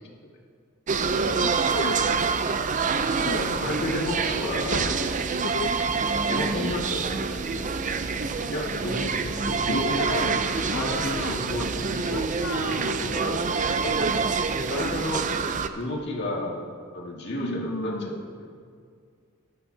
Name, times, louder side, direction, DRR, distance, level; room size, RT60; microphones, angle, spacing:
sound 1, 0.9-15.7, right 5 dB, 35° right, 0.5 m, -26 dB
voice 1, 1.4-2.4 3.2-3.6 4.6-4.9 5.4-6.0 9.7-11.4 12.1-13.1 17.4-18.1, left 3 dB, 70° left, 5 dB, 0.7 m, -33 dB
voice 2, 3.2-5.0 5.4-5.5 6.0-7.7 8.5-10.4 10.8-12.2 12.5-14.0 14.7-15.2 15.7-16.6 16.9-18.5, left 1 dB, 55° left, -2 dB, 2.0 m, -32 dB
15.0 x 12.5 x 2.8 m, 2.2 s
head